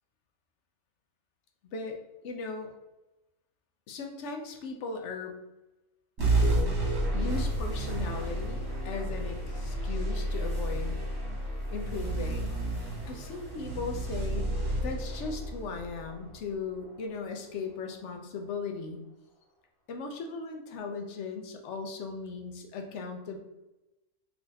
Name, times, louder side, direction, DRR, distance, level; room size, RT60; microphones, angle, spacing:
voice 1, 1.7-2.7 3.9-5.3 7.1-8.6 8.8-11.0 11.7-12.5 13.1-14.5 14.8-19.0 19.9-23.4, left 4 dB, 65° left, 4 dB, 0.7 m, -37 dB
sound 1, 6.2-17.0, right 1 dB, 50° right, 1.4 m, -31 dB
3.4 x 2.5 x 3.9 m, 1.0 s
omnidirectional pair, 1.6 m